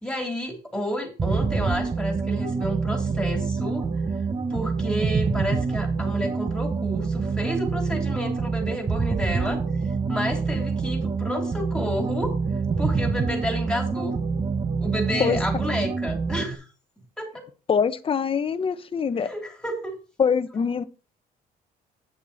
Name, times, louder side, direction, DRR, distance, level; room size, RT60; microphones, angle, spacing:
voice 1, 0.0-3.8 4.5-9.6 10.1-12.3 12.8-14.2 14.8-16.6 17.2-17.4 19.2-20.0, equal, 5° left, 3.2 m, -30 dB
sound 1, 1.2-16.6, right 4 dB, 25° right, 1.1 m, -26 dB
voice 2, 17.7-19.3 20.2-20.8, left 6 dB, 30° left, 0.9 m, -23 dB
8.8 x 7.4 x 4.1 m
cardioid pair, 110°, 17 cm